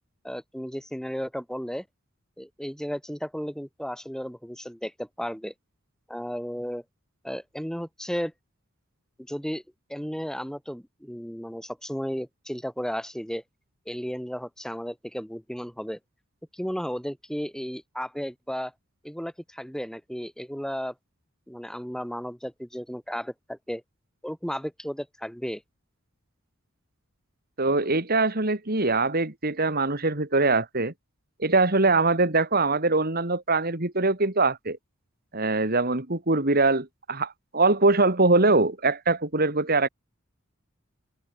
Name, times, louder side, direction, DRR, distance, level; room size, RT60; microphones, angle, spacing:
voice 1, 0.2-1.9 2.4-5.5 6.1-6.8 7.2-8.3 9.3-9.6 9.9-13.4 13.9-16.0 16.5-18.7 19.0-20.9 21.5-23.8 24.2-25.6, equal, 5° left, 5.8 m, -34 dB
voice 2, 27.6-30.9 31.4-34.8 35.3-39.9, right 3 dB, 45° right, 2.8 m, -23 dB
open air
head